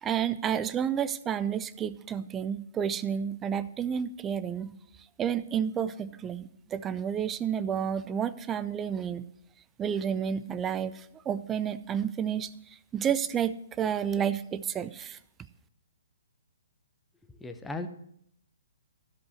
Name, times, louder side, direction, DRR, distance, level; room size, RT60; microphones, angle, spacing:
voice 1, 0.0-4.7 5.2-9.2 9.8-12.5 12.9-15.2, right 8 dB, 15° right, 16 dB, 0.5 m, -30 dB
voice 2, 17.3-17.9, left 2 dB, 5° left, 6 dB, 0.9 m, -37 dB
15.5 x 5.4 x 6.6 m, 0.72 s
figure-of-eight pair, 125°, 0 cm